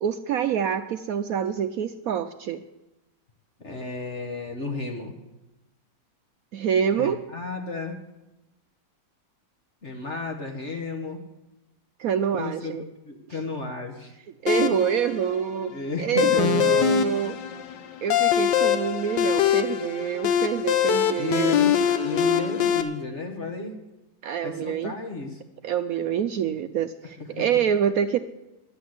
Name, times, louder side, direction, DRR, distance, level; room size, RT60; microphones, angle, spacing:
voice 1, 0.0-2.6 6.5-7.2 12.0-12.8 13.3-13.4 14.4-17.4 18.0-21.6 24.2-24.9 25.6-28.2, right 8 dB, 70° right, 9 dB, 0.8 m, -26 dB
voice 2, 3.6-5.1 7.0-8.0 9.8-11.2 12.4-14.2 14.5-14.8 15.7-17.1 21.2-23.8 24.4-25.4, left 3 dB, 40° left, 2 dB, 1.5 m, -33 dB
sound 1, 14.5-22.8, left 9 dB, 75° left, 1.5 m, -23 dB
10.5 x 10.0 x 7.9 m, 0.98 s
omnidirectional pair, 2.0 m